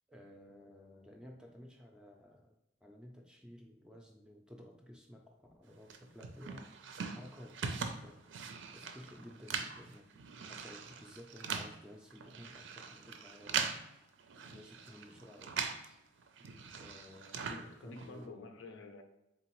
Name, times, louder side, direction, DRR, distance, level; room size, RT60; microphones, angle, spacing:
voice 1, 0.1-13.9 14.4-16.0 16.7-18.5, equal, 5° right, 1 dB, 0.4 m, -55 dB
sound 1, 5.9-15.9 16.2-18.3, right 6 dB, 75° right, 0.4 m, -42 dB
voice 2, 17.4-19.0, left 3 dB, 90° left, 6 dB, 0.6 m, -49 dB
3.8 x 3.7 x 3.0 m, 0.91 s
head